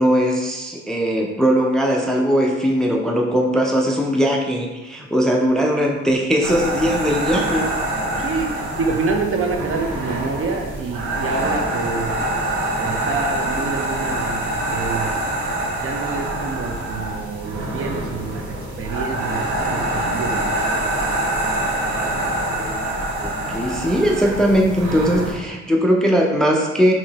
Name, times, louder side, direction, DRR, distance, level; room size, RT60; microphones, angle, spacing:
voice 1, 0.0-7.7 22.6-22.8 23.2-26.9, equal, ahead, 0 dB, 0.4 m, -19 dB
sound 1, 6.4-25.3, right 1 dB, 75° right, 1.2 m, -25 dB
voice 2, 8.2-12.1 12.8-15.1 15.8-20.5, right 4 dB, 45° right, 3 dB, 0.6 m, -27 dB
5.0 x 2.8 x 2.8 m, 1.2 s
cardioid pair, 90°, 30 cm